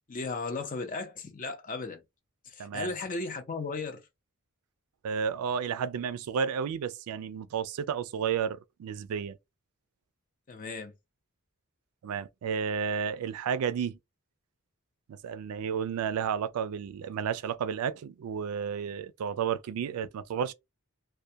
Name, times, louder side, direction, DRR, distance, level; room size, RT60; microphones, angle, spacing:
voice 1, 0.1-2.0 2.4-4.1 10.5-10.9, left 3 dB, 35° left, 0.5 m, -36 dB
voice 2, 2.6-2.9 5.0-9.4 12.0-14.0 15.1-20.5, right 7 dB, 85° right, 0.3 m, -32 dB
2.2 x 2.1 x 2.7 m
head